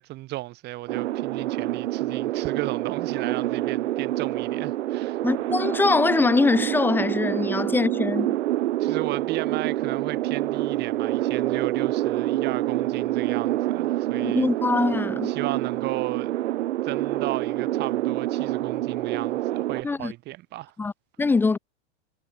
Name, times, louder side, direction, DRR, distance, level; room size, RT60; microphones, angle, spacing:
voice 1, 0.0-5.2 8.8-14.5 15.2-16.4 16.8-20.7, right 18 dB, 30° right, 5.9 m, -35 dB
sound 1, 0.9-19.8, right 15 dB, 90° right, 0.7 m, -27 dB
voice 2, 5.2-8.4 14.2-15.3 19.8-20.1 20.8-20.9 21.2-21.6, left 4 dB, 5° left, 0.8 m, -23 dB
supercardioid pair, 160°, 34 cm